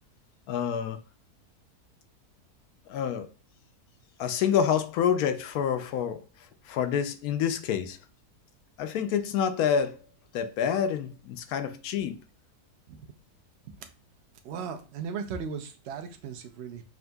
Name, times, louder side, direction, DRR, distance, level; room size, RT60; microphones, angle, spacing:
voice 1, 0.5-1.0 2.9-3.3 4.2-6.2 6.7-8.0 8.8-10.0 10.3-12.2, left 8 dB, 75° left, 1.0 m, -27 dB
voice 2, 14.4-16.8, right 6 dB, 60° right, 0.7 m, -36 dB
6.0 x 2.7 x 2.2 m
omnidirectional pair, 1.7 m